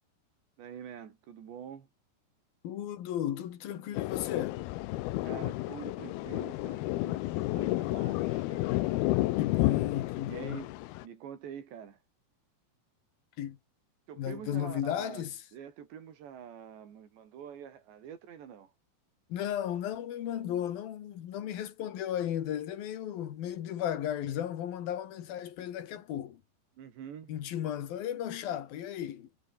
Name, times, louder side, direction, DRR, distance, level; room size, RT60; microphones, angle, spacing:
voice 1, 0.6-1.9 5.2-8.9 10.3-10.8 11.0-12.0 14.1-15.2 15.5-18.7 26.8-27.3, right 8 dB, 90° right, 5.5 m, -46 dB
voice 2, 2.6-4.6 9.4-10.6 13.4-13.6 14.2-15.3 19.3-26.4 27.3-29.3, left 10 dB, 65° left, 3.5 m, -35 dB
Thunder, 4.0-11.0, left 18 dB, 80° left, 2.5 m, -31 dB
omnidirectional pair, 4.9 m